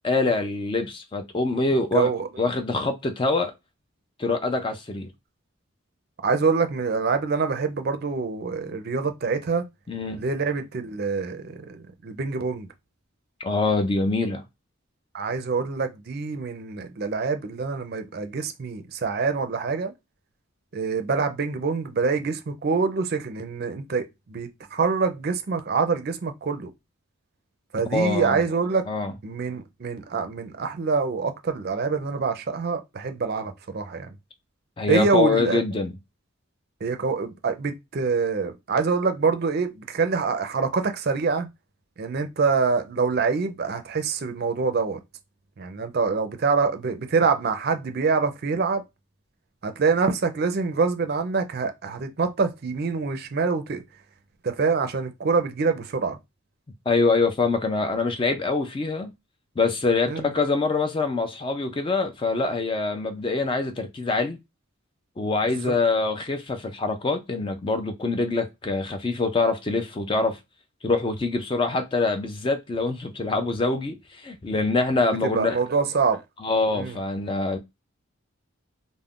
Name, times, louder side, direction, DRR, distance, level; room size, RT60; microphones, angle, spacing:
voice 1, 0.0-2.1 2.4-3.5 4.2-5.1 9.9-10.2 13.4-14.4 27.9-28.4 28.9-29.1 34.8-35.9 56.9-59.1 59.6-64.4 65.2-70.4 70.8-75.6 76.4-77.6, left 3 dB, 25° left, 0.3 m, -24 dB
voice 2, 1.9-2.4 6.2-9.6 10.2-12.7 15.1-19.9 20.7-26.7 27.7-28.9 29.2-34.1 34.9-35.6 36.8-41.5 42.0-45.0 45.6-48.8 49.6-53.8 54.4-56.2 60.1-60.3 65.4-65.8 75.2-76.2 76.7-77.0, right 4 dB, 45° right, 0.4 m, -25 dB
2.4 x 2.0 x 3.5 m
head